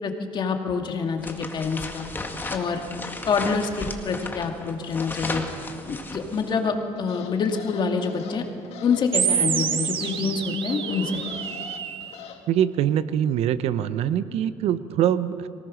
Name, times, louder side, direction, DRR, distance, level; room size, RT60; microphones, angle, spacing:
voice 1, 0.0-2.1 2.5-2.8 3.3-5.4 5.9-8.5 8.8-11.2, left 5 dB, 45° left, 4 dB, 2.3 m, -26 dB
sound 1, 1.2-6.7, left 2 dB, 20° left, 2.0 m, -35 dB
sound 2, 6.9-12.4, left 6 dB, 70° left, 2.1 m, -42 dB
sound 3, 9.1-12.1, right 8 dB, 55° right, 1.4 m, -27 dB
voice 2, 12.5-15.5, right 10 dB, 70° right, 14 dB, 0.8 m, -23 dB
24.0 x 18.5 x 6.4 m, 2.4 s
cardioid pair, 110°, 11 cm